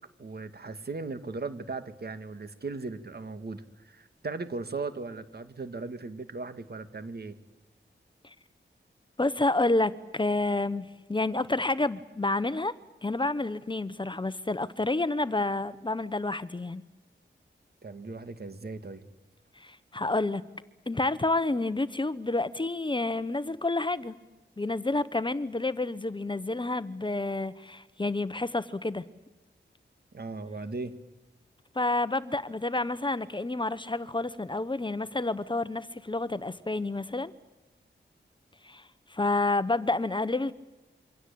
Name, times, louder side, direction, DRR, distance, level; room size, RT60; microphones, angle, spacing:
voice 1, 0.2-7.4 17.8-19.0 30.1-30.9, right 3 dB, 55° right, 10 dB, 2.3 m, -37 dB
voice 2, 9.2-12.7 13.0-16.8 19.6-20.4 20.9-24.2 24.6-29.0 31.7-37.3 38.6-40.5, left 2 dB, 25° left, 15 dB, 1.0 m, -29 dB
27.5 x 24.5 x 8.7 m, 1.1 s
wide cardioid pair, 90°, 19 cm